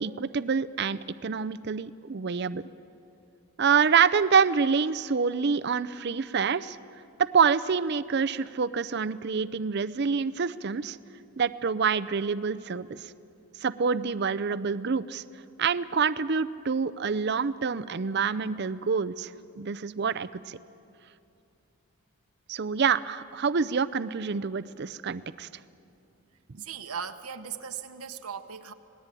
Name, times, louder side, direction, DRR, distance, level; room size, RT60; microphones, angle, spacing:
voice 1, 0.0-2.6 3.6-6.8 7.2-11.0 11.4-13.0 13.6-15.2 15.6-20.6 22.5-25.5 26.5-26.7, right 6 dB, 50° right, 14 dB, 0.5 m, -27 dB
voice 2, 26.6-28.7, right 7 dB, 85° right, 7 dB, 1.1 m, -38 dB
26.5 x 19.0 x 9.1 m, 2.7 s
head